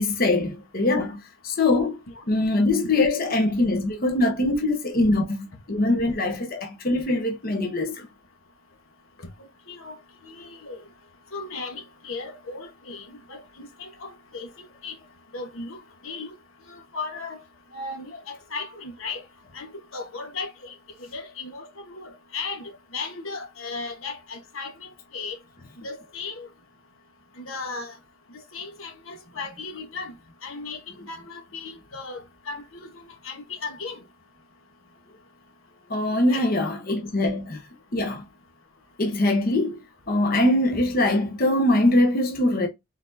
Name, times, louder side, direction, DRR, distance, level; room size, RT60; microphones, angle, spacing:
voice 1, 0.0-2.0 2.3-8.1 35.9-37.6 37.9-38.2 39.0-39.8 40.1-42.7, left 2 dB, 45° left, 0.9 m, -23 dB
voice 2, 10.2-10.8 11.3-14.5 14.8-14.9 15.3-15.8 16.0-16.3 16.7-17.4 17.7-19.2 19.5-25.4 25.8-26.5 27.4-27.9 28.5-30.1 30.4-34.0 36.3-36.4, left 4 dB, 85° left, 1.2 m, -36 dB
4.1 x 4.0 x 2.6 m
head